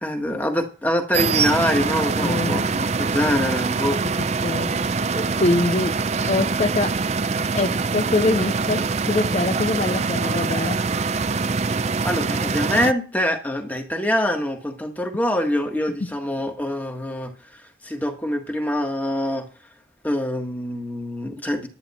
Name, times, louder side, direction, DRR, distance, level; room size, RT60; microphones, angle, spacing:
voice 1, 0.0-4.0 12.0-19.5 20.0-21.7, left 1 dB, 10° left, 1.6 m, -25 dB
sound 1, 1.1-12.9, right 4 dB, 35° right, 0.5 m, -24 dB
voice 2, 2.2-2.7 4.0-6.0 6.3-7.0 7.4-10.8 16.0-16.1, left 2 dB, 40° left, 0.4 m, -25 dB
11.0 x 10.5 x 4.3 m
head